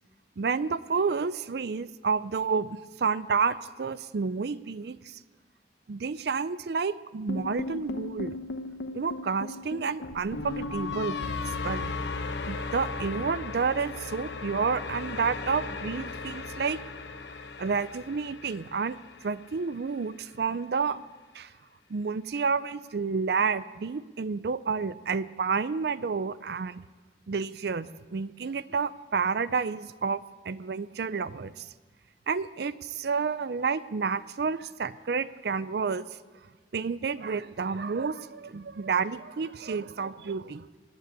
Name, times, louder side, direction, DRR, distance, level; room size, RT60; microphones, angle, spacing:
voice 1, 0.4-5.2 5.9-8.3 8.9-11.2 11.6-11.9 12.4-16.8 17.6-19.0 19.2-21.0 21.3-21.5 21.9-26.8 27.3-31.7 32.3-36.1 36.7-40.7, right 5 dB, 60° right, 16 dB, 0.4 m, -30 dB
sound 1, 7.3-19.5, left 3 dB, 70° left, 1.0 m, -36 dB
19.0 x 8.6 x 8.2 m, 1.4 s
head